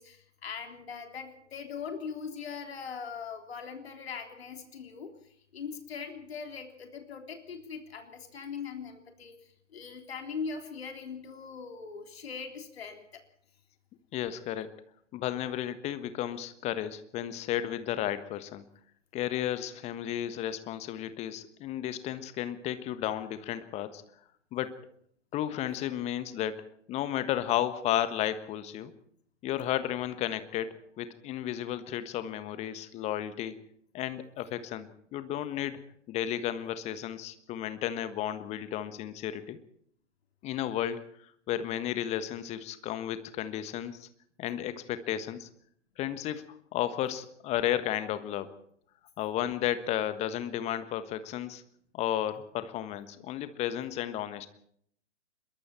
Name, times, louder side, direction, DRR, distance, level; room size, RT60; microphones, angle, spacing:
voice 1, 0.0-5.1 5.5-9.3 9.7-13.2, left 6 dB, 55° left, 4 dB, 3.6 m, -40 dB
voice 2, 14.1-14.7 15.1-18.6 19.1-24.0 24.5-24.8 25.3-26.6 26.9-28.9 29.4-33.5 33.9-35.8 36.1-39.6 40.4-44.1 44.4-45.5 46.0-46.4 46.7-48.5 49.2-51.6 51.9-54.5, left 11 dB, 20° left, 12 dB, 1.4 m, -33 dB
26.0 x 22.5 x 4.4 m, 0.66 s
figure-of-eight pair, 120°, 36 cm